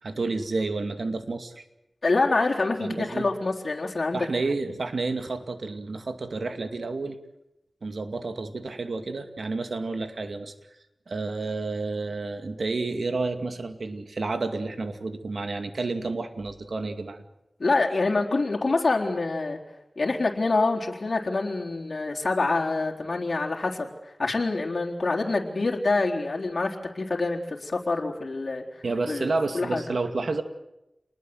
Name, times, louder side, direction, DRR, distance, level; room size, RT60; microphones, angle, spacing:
voice 1, 0.0-1.6 2.8-3.3 4.1-7.2 7.8-10.5 11.1-17.2 28.8-30.4, right 3 dB, 80° right, 8 dB, 2.4 m, -30 dB
voice 2, 2.0-4.3 17.6-19.6 20.0-29.3 29.5-29.8, left 3 dB, 65° left, -1 dB, 4.0 m, -26 dB
29.0 x 21.0 x 8.0 m, 0.90 s
cardioid pair, 40°, 0 cm